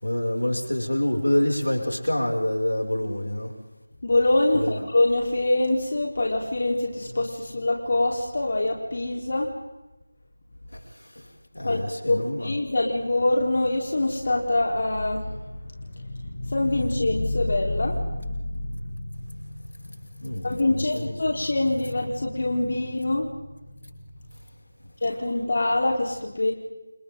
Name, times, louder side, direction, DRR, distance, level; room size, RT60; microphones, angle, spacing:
voice 1, 0.0-3.5 4.5-4.7 11.2-11.3 11.5-12.5 20.2-21.1, left 1 dB, 85° left, 1 dB, 6.3 m, -26 dB
voice 2, 4.0-9.5 11.6-11.8 12.1-19.5 19.8-23.3 25.0-26.5, left 2 dB, 50° left, 0 dB, 4.0 m, -25 dB
30.0 x 28.5 x 3.9 m, 1.0 s
figure-of-eight pair, 170°, 0 cm